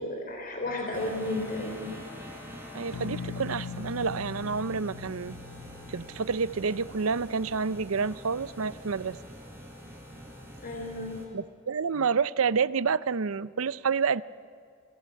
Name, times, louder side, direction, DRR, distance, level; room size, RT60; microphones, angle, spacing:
voice 1, 0.0-1.9 10.6-11.2, left 2 dB, 40° left, 2 dB, 3.4 m, -33 dB
sound 1, 0.9-11.3, equal, 10° right, 4.3 m, -45 dB
voice 2, 2.7-5.4 5.9-9.2 11.3-14.2, right 5 dB, 70° right, 17 dB, 0.6 m, -29 dB
sound 2, 2.9-7.8, left 6 dB, 85° left, 0.7 m, -42 dB
28.5 x 18.5 x 8.5 m, 2.3 s
head